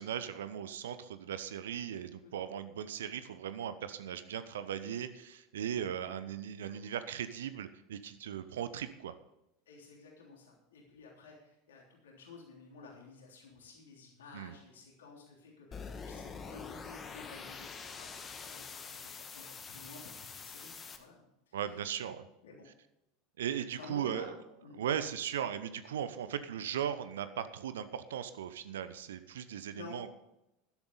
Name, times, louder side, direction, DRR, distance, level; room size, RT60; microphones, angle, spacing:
voice 1, 0.0-9.1 14.3-14.5 21.5-22.2 23.4-24.3 24.7-30.1, right 9 dB, 65° right, 12 dB, 0.9 m, -38 dB
voice 2, 9.7-21.9 22.4-22.7 23.8-24.8 29.4-30.0, left 4 dB, 70° left, -1 dB, 3.3 m, -52 dB
sound 1, 15.7-21.0, left 5 dB, 25° left, 1.6 m, -45 dB
13.5 x 11.5 x 4.0 m, 0.87 s
figure-of-eight pair, 80°, 0 cm